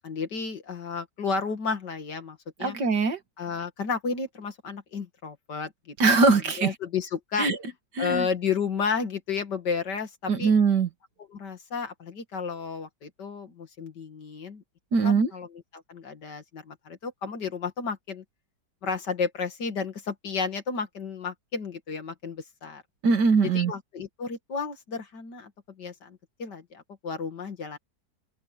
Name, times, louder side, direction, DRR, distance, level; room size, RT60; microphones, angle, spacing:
voice 1, 0.0-2.8 3.4-6.0 6.6-7.5 8.0-10.5 11.3-14.6 15.0-15.5 15.7-18.2 18.8-22.8 23.4-25.5 25.8-27.8, left 5 dB, 70° left, 2.7 m, -32 dB
voice 2, 2.6-3.2 6.0-6.7 7.4-7.6 8.0-8.3 10.3-10.9 14.9-15.3 23.0-23.7, right 4 dB, 65° right, 2.5 m, -21 dB
open air
omnidirectional pair, 1.9 m